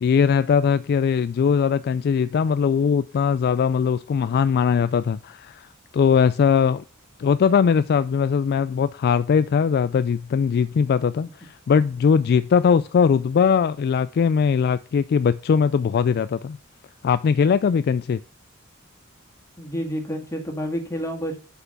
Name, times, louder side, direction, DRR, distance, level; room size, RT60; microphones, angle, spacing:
voice 1, 0.0-5.7 5.9-6.8 7.2-16.6 17.0-18.2, left 6 dB, 50° left, 0.3 m, -20 dB
voice 2, 19.6-21.4, equal, 15° left, 2.1 m, -29 dB
6.0 x 5.7 x 7.0 m
head